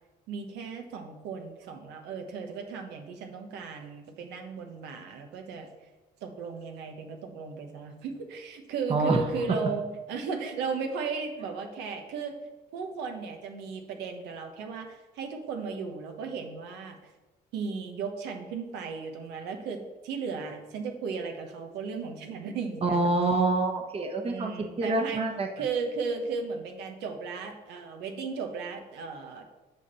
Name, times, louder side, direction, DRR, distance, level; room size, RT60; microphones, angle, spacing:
voice 1, 0.3-5.7 6.2-12.3 12.7-17.0 17.5-23.2 24.2-25.2 25.6-29.4, right 5 dB, 85° right, 4 dB, 1.2 m, -35 dB
voice 2, 8.9-9.2 22.8-24.5 24.8-25.5, right 3 dB, 35° right, 4 dB, 1.2 m, -26 dB
8.2 x 4.4 x 6.8 m, 1.1 s
cardioid pair, 110°, 17 cm